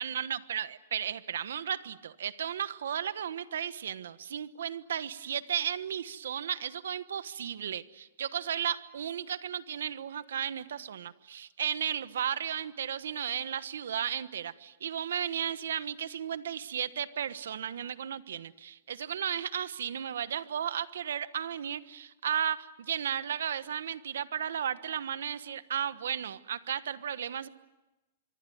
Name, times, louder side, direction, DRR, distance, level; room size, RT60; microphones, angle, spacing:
voice 1, 0.0-27.5, right 9 dB, 85° right, 14 dB, 1.2 m, -34 dB
25.5 x 24.0 x 9.3 m, 1.0 s
supercardioid pair, 165°, 0 cm